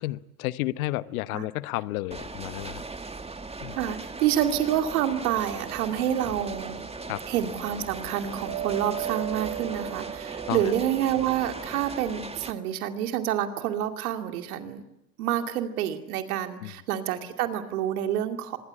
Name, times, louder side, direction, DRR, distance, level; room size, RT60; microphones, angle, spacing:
voice 1, 0.0-2.8 3.6-3.8 7.1-7.2 10.5-10.7 16.6-16.7, left 18 dB, 75° left, 16 dB, 1.0 m, -31 dB
sound 1, 2.1-12.5, right 3 dB, 15° right, 1.8 m, -39 dB
voice 2, 3.8-6.8 7.3-14.8 15.2-18.6, right 10 dB, 80° right, 6 dB, 2.6 m, -28 dB
sound 2, 4.4-11.2, right 10 dB, 65° right, 3.1 m, -38 dB
25.5 x 21.5 x 10.0 m, 0.88 s
hypercardioid pair, 65°, 43 cm